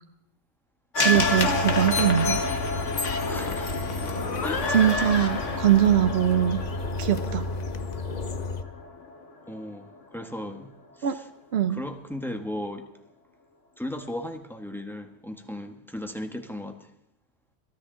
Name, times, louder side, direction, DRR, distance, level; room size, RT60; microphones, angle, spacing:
sound 1, 0.9-9.2 9.6-9.7, left 3 dB, 75° left, 1.8 m, -29 dB
voice 1, 1.0-2.4 4.7-6.6 7.0-7.5 11.0-11.2 11.5-11.8, right 10 dB, 60° right, 8 dB, 0.9 m, -22 dB
sound 2, 1.1-8.6, left 2 dB, 40° left, 0.8 m, -33 dB
voice 2, 3.2-3.8 4.4-4.8 9.5-11.3 11.7-12.9 13.8-16.9, left 1 dB, ahead, 5 dB, 1.2 m, -36 dB
22.5 x 13.0 x 3.8 m, 0.77 s
omnidirectional pair, 1.3 m